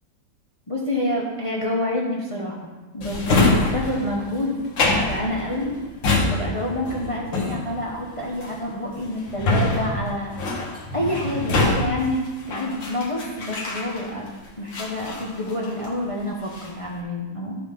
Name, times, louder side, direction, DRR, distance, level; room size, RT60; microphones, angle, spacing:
voice 1, 0.7-2.6 2.9-5.8 6.3-10.4 10.9-14.3 14.6-17.6, left 1 dB, 20° left, -3 dB, 0.9 m, -28 dB
Drawer open or close, 3.0-14.3 14.7-16.0 16.3-16.9, left 2 dB, 85° left, 2.1 m, -25 dB
13.0 x 5.8 x 3.7 m, 1.2 s
omnidirectional pair, 2.0 m